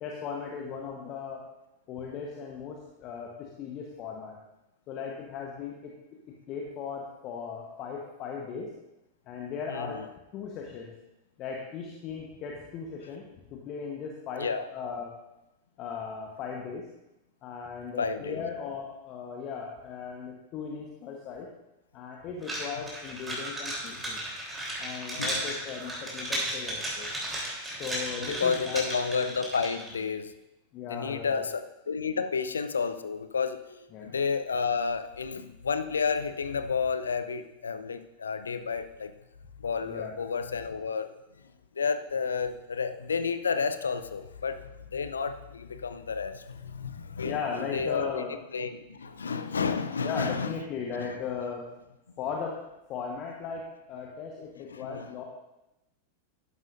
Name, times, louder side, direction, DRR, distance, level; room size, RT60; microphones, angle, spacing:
voice 1, 0.0-1.4 1.9-4.4 4.9-5.9 6.5-8.7 9.3-10.0 10.3-10.9 11.4-15.1 15.8-16.9 17.4-21.5 21.9-24.2 24.8-27.1 27.8-28.8 30.7-31.5 33.9-34.1 39.8-40.2 47.2-48.3 50.0-51.6 52.2-52.6 52.9-55.2, left 6 dB, 35° left, 0 dB, 1.2 m, -37 dB
voice 2, 9.7-10.0 14.4-14.7 18.0-18.4 25.2-25.4 28.2-30.3 30.9-39.1 39.6-41.1 41.8-48.3 48.5-50.6 51.0-51.2 54.7-55.1, left 5 dB, 70° left, 10 dB, 0.6 m, -31 dB
sound 1, 22.4-29.9, right 1 dB, 10° right, 3.5 m, -35 dB
12.5 x 11.0 x 2.7 m, 0.93 s
figure-of-eight pair, 90°, 0 cm